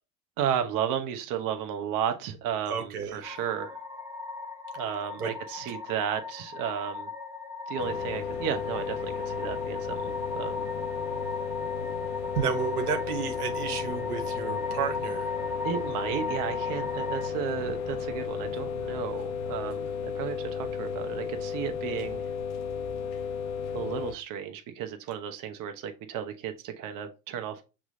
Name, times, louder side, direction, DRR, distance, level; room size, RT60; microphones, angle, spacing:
voice 1, 0.4-3.8 4.8-7.1 7.7-10.6 15.6-22.2 23.7-27.6, right 9 dB, 45° right, 0.9 m, -33 dB
voice 2, 2.7-3.2 5.2-5.3 12.4-15.3, right 7 dB, 85° right, 1.1 m, -31 dB
sound 1, 3.2-17.3, left 4 dB, 5° right, 0.8 m, -37 dB
sound 2, 7.8-24.1, left 6 dB, 70° left, 1.2 m, -34 dB
5.9 x 3.2 x 2.6 m
hypercardioid pair, 75°, 44 cm